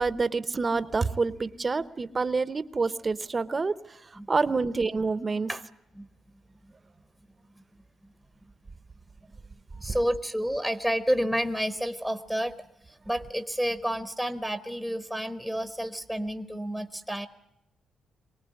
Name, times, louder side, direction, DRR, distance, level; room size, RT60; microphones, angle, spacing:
voice 1, 0.0-5.5, right 4 dB, 25° right, 15 dB, 0.8 m, -27 dB
voice 2, 9.8-12.6 12.8-17.3, equal, ahead, 10 dB, 0.9 m, -30 dB
24.0 x 19.0 x 9.8 m, 0.89 s
cardioid pair, 145°, 0 cm